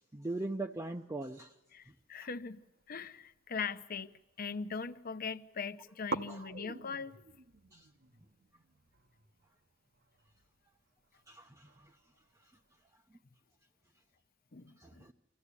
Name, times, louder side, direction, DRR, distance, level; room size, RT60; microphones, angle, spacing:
voice 1, 0.1-1.5 6.3-6.4 7.7-7.8 11.3-11.7 14.8-15.1, right 2 dB, 15° right, 0.6 m, -40 dB
voice 2, 1.7-2.6 2.9-7.2 14.5-15.1, left 5 dB, 45° left, 0.8 m, -41 dB
sound 1, 2.5-4.3 4.6-5.3 5.5-5.6 6.1-12.9, right 4 dB, 50° right, 0.9 m, -47 dB
24.5 x 15.0 x 8.4 m
head